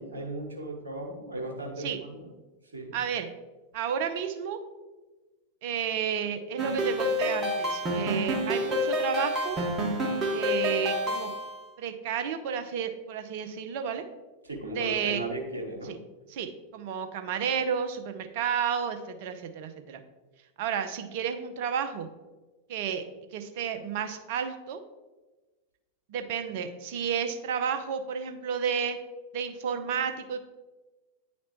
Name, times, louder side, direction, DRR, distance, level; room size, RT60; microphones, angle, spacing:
voice 1, 0.0-2.3 2.7-3.0 14.4-16.0, right 2 dB, 75° right, 1 dB, 1.1 m, -36 dB
voice 2, 2.9-3.3 3.7-4.6 5.6-9.6 10.3-11.3 11.8-14.0 14.7-15.2 15.8-16.0 16.3-20.0 20.6-22.1 22.7-23.0 23.3-24.8 26.1-29.0 29.3-30.5, right 7 dB, 50° right, 8 dB, 0.6 m, -31 dB
sound 1, 6.6-11.6, equal, 25° right, 1.3 m, -28 dB
9.4 x 4.2 x 3.0 m, 1.2 s
figure-of-eight pair, 90°, 0 cm